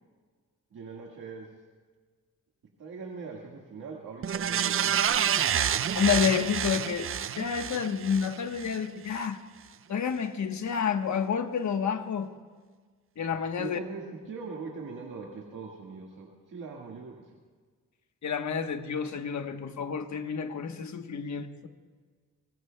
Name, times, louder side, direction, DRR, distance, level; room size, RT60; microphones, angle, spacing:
voice 1, 0.7-1.5 2.8-5.7 13.6-17.4, right 4 dB, 75° right, -2 dB, 1.8 m, -41 dB
sound 1, 4.2-8.8 9.2-9.3, right 9 dB, 45° right, 0.4 m, -28 dB
voice 2, 5.9-9.4 9.9-12.3 13.2-13.8 18.2-21.7, left 7 dB, 60° left, 6 dB, 1.2 m, -29 dB
25.0 x 21.5 x 2.3 m, 1.5 s
wide cardioid pair, 110°, 32 cm